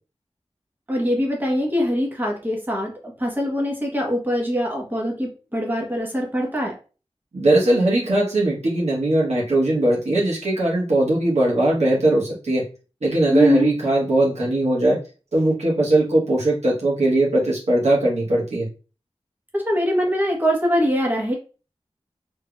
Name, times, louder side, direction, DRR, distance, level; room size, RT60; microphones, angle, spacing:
voice 1, 0.9-6.8 13.3-13.7 19.5-21.3, equal, 15° right, -1 dB, 1.1 m, -22 dB
voice 2, 7.3-12.6 13.0-15.0 15.3-18.7, right 1 dB, 80° right, -5 dB, 1.3 m, -20 dB
3.7 x 3.2 x 2.3 m, 0.34 s
wide cardioid pair, 65°, 11 cm